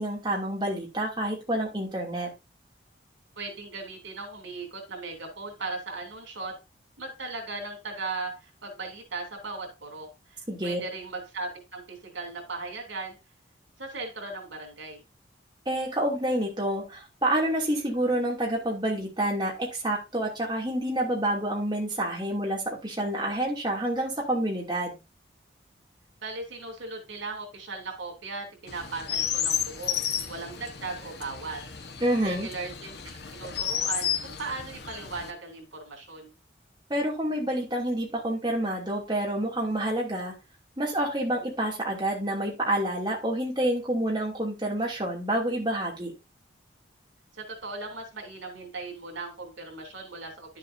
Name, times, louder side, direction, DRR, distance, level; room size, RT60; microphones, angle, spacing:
voice 1, 0.0-2.3 10.5-10.8 15.7-25.0 32.0-32.5 36.9-40.3 40.8-46.1, right 1 dB, 25° right, -2 dB, 2.7 m, -28 dB
voice 2, 3.4-6.5 7.0-13.2 13.8-15.0 26.2-30.0 30.3-31.6 32.2-36.3 47.3-50.6, right 3 dB, 90° right, 3 dB, 3.2 m, -38 dB
Chirp tweet, 28.7-35.3, left 8 dB, 60° left, 1.2 m, -32 dB
11.0 x 7.5 x 2.7 m, 0.26 s
head